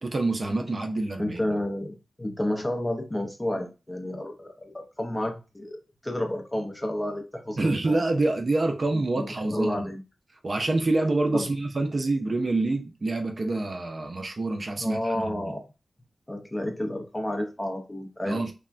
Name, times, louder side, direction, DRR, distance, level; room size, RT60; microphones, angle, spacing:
voice 1, 0.0-1.4 7.6-9.9 10.4-15.5 18.2-18.5, right 2 dB, 40° right, 0.4 m, -27 dB
voice 2, 1.2-8.0 8.9-10.0 11.3-11.5 14.8-15.6 16.3-18.5, left 1 dB, 15° left, 0.5 m, -31 dB
3.3 x 2.1 x 2.4 m
wide cardioid pair, 140°, 0 cm